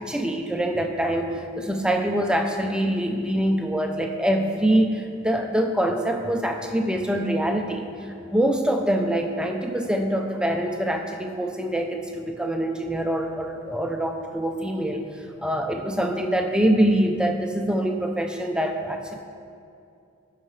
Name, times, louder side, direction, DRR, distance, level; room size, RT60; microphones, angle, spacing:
voice 1, 0.0-7.9 8.2-15.0 15.4-19.2, right 1 dB, 5° right, 3 dB, 0.5 m, -24 dB
16.5 x 5.7 x 3.2 m, 2.5 s
head